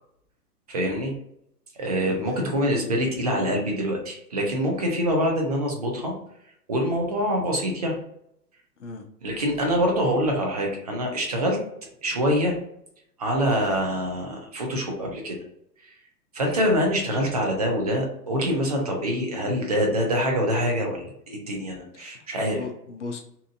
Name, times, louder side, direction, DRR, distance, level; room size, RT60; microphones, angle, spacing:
voice 1, 0.7-1.1 1.7-6.1 6.7-8.0 9.2-11.6 12.0-12.6 13.2-15.4 15.8-15.9 16.3-22.6, equal, 25° right, 1 dB, 0.4 m, -25 dB
voice 2, 2.1-2.5 8.8-9.5 16.6-16.7 21.9-22.3 22.5-23.2, left 4 dB, 50° left, 4 dB, 0.6 m, -38 dB
2.7 x 2.4 x 2.4 m, 0.74 s
figure-of-eight pair, 120°, 49 cm